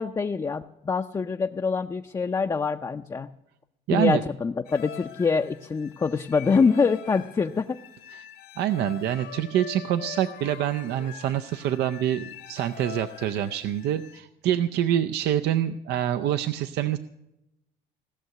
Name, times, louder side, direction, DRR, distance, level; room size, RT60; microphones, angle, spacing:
voice 1, 0.0-3.3 3.9-7.8, left 5 dB, 20° left, 5 dB, 0.5 m, -25 dB
voice 2, 3.9-4.2 8.1-8.3 8.6-17.0, right 11 dB, 80° right, 9 dB, 0.6 m, -26 dB
sound 1, 4.7-14.2, left 10 dB, 75° left, 1.6 m, -44 dB
17.0 x 6.6 x 9.1 m, 0.89 s
cardioid pair, 110°, 17 cm